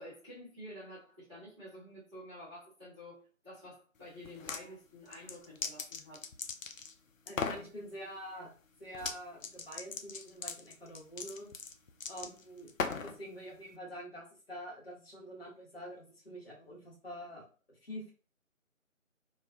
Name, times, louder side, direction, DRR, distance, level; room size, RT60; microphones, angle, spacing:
voice 1, 0.0-6.2, equal, 25° right, -13 dB, 0.9 m, -50 dB
sound 1, 4.2-4.6 5.1-6.9 7.3-7.7 8.9-9.2 9.4-13.2, left 5 dB, 70° left, 0.5 m, -38 dB
voice 2, 7.3-8.5 8.8-11.5 12.1-18.1, equal, 45° left, -2 dB, 1.0 m, -46 dB
2.3 x 2.3 x 2.4 m, 0.37 s
figure-of-eight pair, 170°, 41 cm